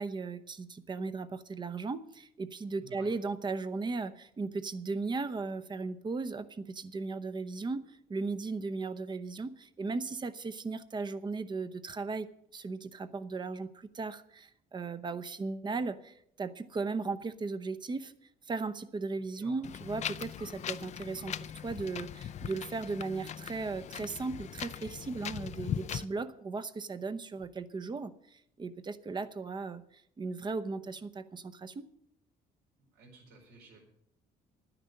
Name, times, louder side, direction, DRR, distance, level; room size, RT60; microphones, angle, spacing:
voice 1, 0.0-18.1 18.4-31.9, right 4 dB, 25° right, 13 dB, 0.8 m, -37 dB
voice 2, 2.8-3.1 19.2-19.6 32.9-33.8, right 3 dB, 85° right, 1 dB, 4.5 m, -54 dB
Wind, 19.6-26.0, left 9 dB, 45° left, 0.5 m, -40 dB
11.5 x 10.0 x 6.6 m, 0.72 s
cardioid pair, 110°, 17 cm